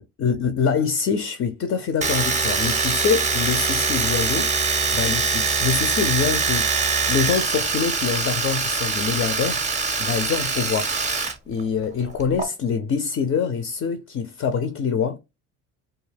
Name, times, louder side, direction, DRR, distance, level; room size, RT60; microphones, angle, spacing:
voice 1, 0.2-4.5 4.9-9.6 10.0-10.9 11.5-15.2, left 6 dB, 35° left, 0.5 m, -25 dB
Domestic sounds home sounds, 2.0-11.3 11.6-12.4, right 4 dB, 20° right, 0.6 m, -23 dB
2.3 x 2.2 x 3.2 m
hypercardioid pair, 70°, 40 cm